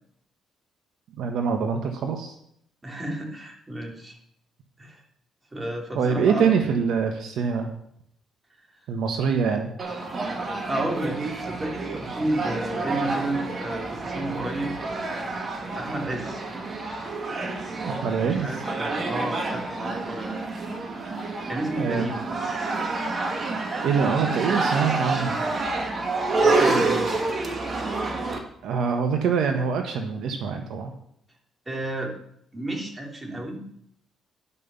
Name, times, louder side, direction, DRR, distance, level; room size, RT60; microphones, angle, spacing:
voice 1, 1.2-2.4 5.9-7.7 8.9-9.7 17.8-18.5 21.8-22.1 23.8-25.4 28.6-30.9, right 6 dB, 80° right, 5 dB, 1.2 m, -24 dB
voice 2, 2.8-4.2 4.8-5.0 5.5-6.5 10.7-14.8 15.7-16.4 18.2-20.4 21.5-22.2 26.4-27.5 31.7-32.1 32.5-33.6, right 1 dB, 20° right, 1 dB, 2.8 m, -31 dB
sound 1, 9.8-28.4, right 3 dB, 40° right, 1.8 m, -28 dB
11.0 x 5.5 x 6.9 m, 0.70 s
cardioid pair, 90°, 0 cm